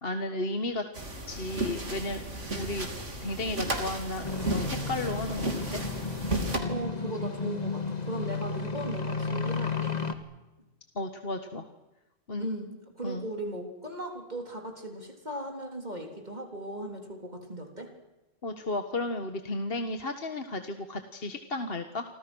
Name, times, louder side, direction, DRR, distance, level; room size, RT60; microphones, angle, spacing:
voice 1, 0.0-0.8 1.3-2.2 2.5-2.9 3.2-5.8 10.9-11.7 12.3-12.5 13.0-13.3 18.4-22.0, left 2 dB, 45° left, 7 dB, 1.7 m, -34 dB
sound 1, 0.9-6.6, right 1 dB, 65° right, 3.6 m, -34 dB
sound 2, 4.2-10.1, left 4 dB, 30° left, 2.0 m, -33 dB
voice 2, 6.6-10.0 12.4-17.9, right 1 dB, 35° right, 4 dB, 3.8 m, -37 dB
29.0 x 24.5 x 6.3 m, 1.1 s
omnidirectional pair, 1.3 m